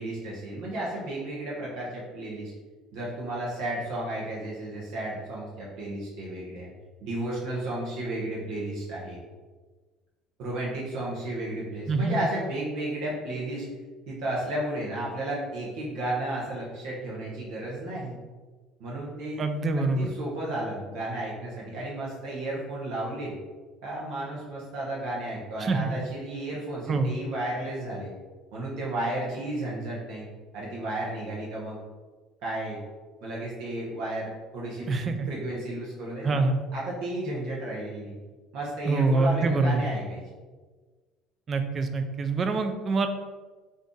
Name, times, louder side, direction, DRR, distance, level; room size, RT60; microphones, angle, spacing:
voice 1, 0.0-2.5 2.9-6.7 7.0-9.2 10.4-13.7 14.1-18.2 18.8-19.4 19.7-23.4 23.8-28.1 28.5-30.3 30.5-31.8 32.4-32.8 33.2-36.5 36.7-38.2 38.5-40.2, right 1 dB, 75° right, -5 dB, 0.8 m, -33 dB
voice 2, 11.9-12.2 19.4-20.1 25.6-25.9 26.9-27.1 34.9-35.3 36.2-36.6 38.8-39.8 41.5-43.1, right 3 dB, 35° right, 7 dB, 0.3 m, -25 dB
2.6 x 2.4 x 3.7 m, 1.4 s
supercardioid pair, 105°, 0 cm